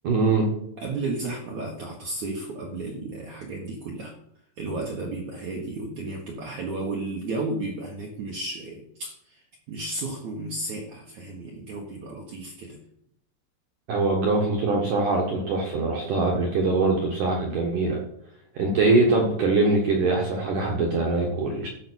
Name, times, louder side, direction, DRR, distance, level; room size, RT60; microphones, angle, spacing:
voice 1, 0.0-0.5 13.9-18.0 18.5-21.7, right 3 dB, 70° right, 0 dB, 1.9 m, -23 dB
voice 2, 0.8-4.1 4.6-12.8, right 2 dB, 85° right, -1 dB, 1.6 m, -33 dB
14.0 x 5.6 x 6.3 m, 0.73 s
omnidirectional pair, 6.0 m